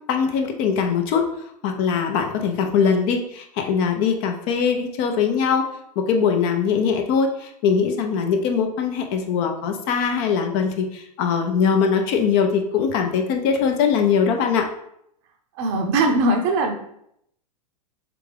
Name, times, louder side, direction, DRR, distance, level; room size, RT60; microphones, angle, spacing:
voice 1, 0.1-1.3 1.6-5.7 6.0-14.7, left 6 dB, 40° left, 4 dB, 0.5 m, -21 dB
voice 2, 15.6-16.7, right 2 dB, 45° right, 4 dB, 0.6 m, -20 dB
3.6 x 3.4 x 3.3 m, 0.74 s
figure-of-eight pair, 95°, 20 cm